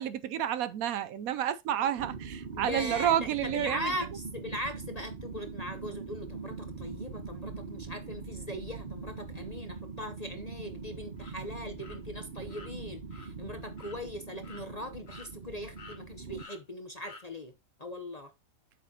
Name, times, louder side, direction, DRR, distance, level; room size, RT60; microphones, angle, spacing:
voice 1, 0.0-3.9, right 10 dB, 70° right, 1.0 m, -30 dB
sound 1, 2.0-16.4, right 4 dB, 40° right, 0.9 m, -42 dB
voice 2, 2.5-17.5 17.8-18.3, left 1 dB, 35° left, 0.7 m, -40 dB
sound 2, 11.2-11.3 11.8-12.0 12.5-12.7 13.1-13.3 13.8-14.0 14.4-14.6 15.1-15.5 15.8-16.0 16.4-16.6 17.0-17.2, left 2 dB, 90° left, 2.2 m, -49 dB
8.3 x 6.6 x 2.8 m
omnidirectional pair, 1.6 m